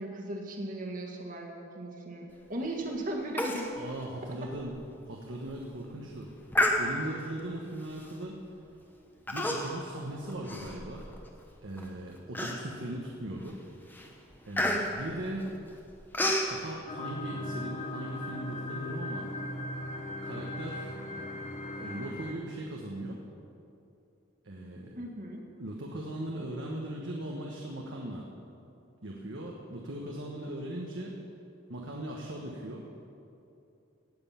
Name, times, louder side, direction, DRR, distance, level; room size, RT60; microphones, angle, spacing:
voice 1, 0.0-3.7 4.3-4.4 25.0-25.4, right 1 dB, 40° right, 0 dB, 1.7 m, -37 dB
Human voice, 3.4-3.7 4.0-4.1 4.6-4.7 5.3-5.6 6.5-7.2 8.0-8.2 9.3-9.9 10.2-11.3 11.8-11.9 12.3-12.9 13.4-13.6 13.9-16.5, left 1 dB, 10° left, 1.0 m, -30 dB
voice 2, 3.7-4.7 5.1-6.3 6.8-8.4 9.3-11.1 11.6-13.6 14.5-15.6 16.5-19.3 20.2-20.9 21.8-23.2 24.4-25.0 25.6-28.2 29.0-31.2 31.7-32.9, right 1 dB, 65° right, -1 dB, 1.2 m, -39 dB
sound 1, 16.9-22.3, left 1 dB, 35° left, 1.0 m, -38 dB
18.0 x 7.8 x 5.7 m, 2.7 s
head